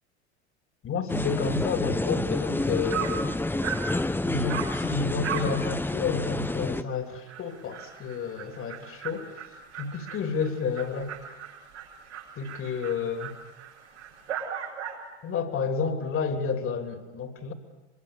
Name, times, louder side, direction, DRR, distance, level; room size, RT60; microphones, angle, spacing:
voice 1, 0.8-3.3 4.2-9.3 9.8-11.1 12.4-13.3 15.2-17.5, left 5 dB, 40° left, 6 dB, 3.3 m, -30 dB
sound 1, 1.1-6.8, left 2 dB, 5° left, 1.0 m, -29 dB
Dog, 2.5-2.6 2.9-3.2 3.6-3.9 4.5-4.8 5.2-5.6 5.9-6.0 6.4-6.5 6.9-7.0 7.3-15.1, right 8 dB, 80° right, 6.6 m, -37 dB
24.5 x 24.0 x 6.9 m, 1.1 s
figure-of-eight pair, 70°, 34 cm